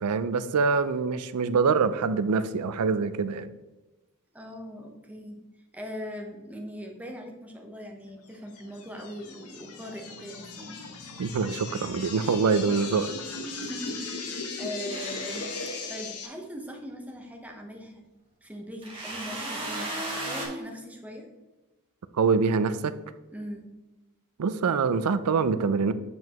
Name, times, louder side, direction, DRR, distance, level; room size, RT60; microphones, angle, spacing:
voice 1, 0.0-3.5 11.2-13.1 22.2-22.9 24.4-25.9, right 5 dB, 75° right, 13 dB, 0.4 m, -25 dB
voice 2, 4.3-5.4 5.7-10.9 13.6-18.0 18.4-21.3 23.3-23.7, equal, 5° right, 2 dB, 0.9 m, -40 dB
sound 1, 8.5-16.3, left 3 dB, 75° left, 1.0 m, -38 dB
sound 2, 14.9-15.9 18.8-20.5, right 2 dB, 25° right, 1.8 m, -35 dB
7.7 x 5.3 x 3.0 m, 1.1 s
head